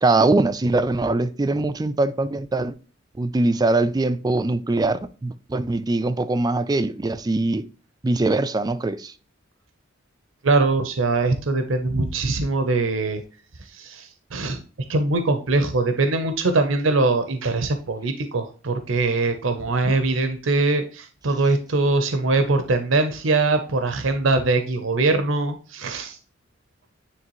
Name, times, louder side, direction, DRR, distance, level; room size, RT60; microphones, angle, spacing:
voice 1, 0.0-2.7 3.2-7.6 8.0-9.1, right 2 dB, 20° right, 0.3 m, -22 dB
voice 2, 10.4-13.2 13.7-14.6 14.9-26.2, right 3 dB, 70° right, 0.7 m, -22 dB
9.5 x 3.4 x 3.0 m
head